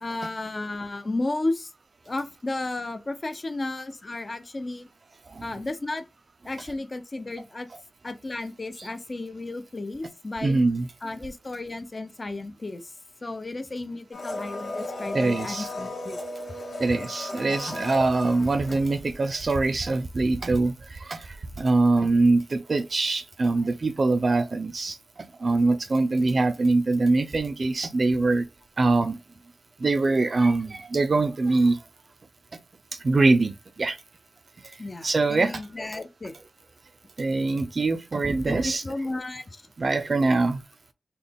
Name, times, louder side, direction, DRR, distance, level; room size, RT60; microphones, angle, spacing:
voice 1, 0.0-1.7 2.1-4.9 5.4-6.0 6.4-7.7 8.0-10.6 11.0-12.9 13.2-16.2 17.4-17.8 34.8-36.3 38.4-39.6, left 2 dB, 35° left, 0.6 m, -33 dB
voice 2, 10.4-10.9 15.1-15.7 16.8-28.5 28.8-29.2 29.8-31.8 33.0-34.0 34.6-34.8 35.0-35.6 37.2-38.8 39.8-40.6, right 3 dB, 45° right, 0.4 m, -23 dB
Domestic sounds home sounds, 14.1-19.4 19.6-19.7, left 2 dB, 55° left, 1.1 m, -35 dB
4.0 x 2.3 x 3.4 m
wide cardioid pair, 105°, 0 cm